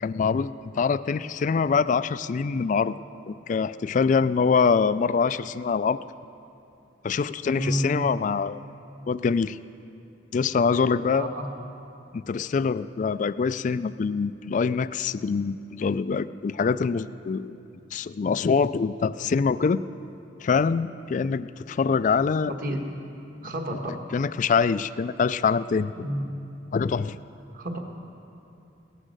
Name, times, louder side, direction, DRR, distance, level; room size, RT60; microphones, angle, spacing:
voice 1, 0.0-3.0 3.3-6.0 7.0-8.6 9.1-9.6 10.3-11.3 12.1-17.6 17.9-19.8 20.4-22.5 23.4-25.9 26.7-27.1, left 5 dB, 45° left, 15 dB, 0.3 m, -24 dB
voice 2, 7.6-7.9 11.1-11.5 22.6-22.8 23.4-24.0 26.0-26.2 27.5-27.8, right 1 dB, 50° right, 3 dB, 1.5 m, -29 dB
17.5 x 9.9 x 6.6 m, 2.7 s
head